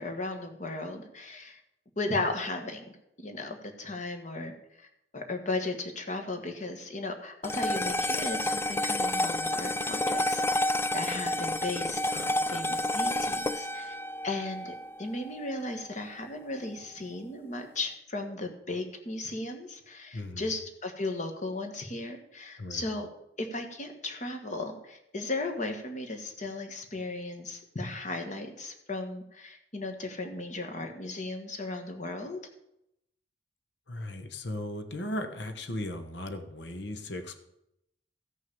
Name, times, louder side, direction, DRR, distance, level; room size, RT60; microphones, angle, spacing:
voice 1, 0.0-1.6 2.0-2.8 3.2-4.9 5.1-10.6 10.9-14.0 14.2-23.1 23.4-32.4, left 2 dB, 40° left, 5 dB, 1.8 m, -36 dB
sound 1, 7.4-16.0, left 1 dB, 15° left, 0.3 m, -30 dB
voice 2, 20.1-20.5 22.6-22.9 33.9-37.3, left 1 dB, 65° left, 8 dB, 1.2 m, -37 dB
15.0 x 6.5 x 7.0 m, 0.81 s
head